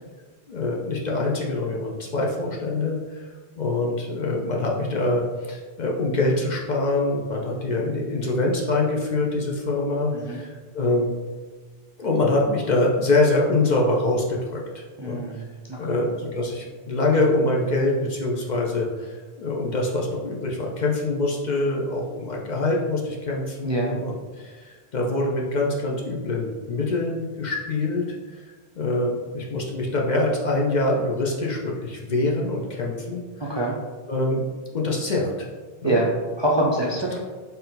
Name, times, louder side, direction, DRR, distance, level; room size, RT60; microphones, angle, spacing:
voice 1, 0.5-3.3 3.6-11.1 12.0-15.4 15.8-28.0 28.3-28.4 28.8-33.6 34.1-34.4 34.7-35.5 35.8-36.0, left 2 dB, 55° left, -1 dB, 0.6 m, -24 dB
voice 2, 15.0-16.1 23.6-24.0 33.4-33.7 35.8-36.1 36.4-37.2, right 1 dB, 45° right, -5 dB, 0.4 m, -25 dB
4.3 x 2.6 x 3.7 m, 1.4 s
omnidirectional pair, 1.1 m